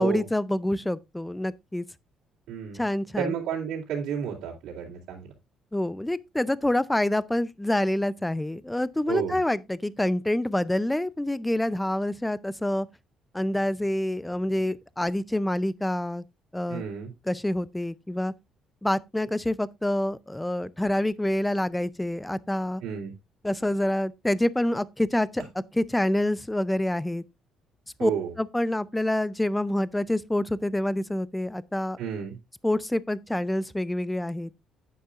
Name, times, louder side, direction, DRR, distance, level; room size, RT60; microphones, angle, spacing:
voice 1, 0.0-1.9 2.7-3.3 5.7-12.9 13.3-16.2 16.5-16.8 17.2-18.3 18.8-22.8 23.4-25.4 25.7-27.2 28.0-28.1 28.4-32.0 32.6-34.5, left 1 dB, 5° left, 0.4 m, -27 dB
voice 2, 2.5-2.8 3.2-5.3 9.1-9.4 16.7-17.1 22.8-23.1 28.0-28.3 32.0-32.4, right 8 dB, 85° right, 2.7 m, -31 dB
10.5 x 9.5 x 2.4 m
cardioid pair, 160°, 0 cm